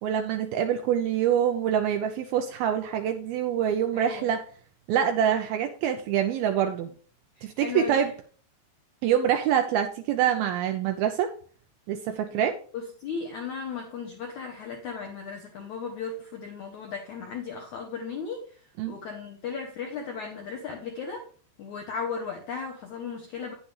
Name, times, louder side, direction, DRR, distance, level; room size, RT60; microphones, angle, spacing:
voice 1, 0.0-4.4 4.9-6.9 7.4-8.1 9.0-11.3 11.9-12.6 18.8-19.0, right 9 dB, 85° right, 5 dB, 2.2 m, -25 dB
voice 2, 3.9-4.3 7.4-8.0 12.3-12.4 12.7-18.5 18.9-21.2 21.6-23.5, left 5 dB, 80° left, 2 dB, 1.7 m, -36 dB
9.8 x 8.3 x 3.3 m, 0.43 s
omnidirectional pair, 4.9 m